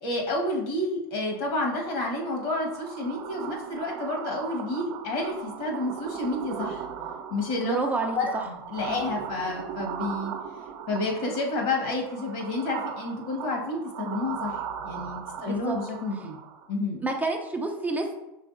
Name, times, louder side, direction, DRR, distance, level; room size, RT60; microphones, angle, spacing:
voice 1, 0.0-6.8 7.3-7.8 8.1-10.3 10.9-16.4 16.7-17.0, left 2 dB, 60° left, 0 dB, 1.5 m, -30 dB
sound 1, 1.4-16.7, right 8 dB, 60° right, 0.7 m, -38 dB
voice 2, 7.6-8.2 8.9-9.0 15.4-15.8 17.0-18.1, right 3 dB, 10° right, 2 dB, 0.5 m, -29 dB
4.9 x 3.4 x 2.6 m, 0.94 s
hypercardioid pair, 115°, 13 cm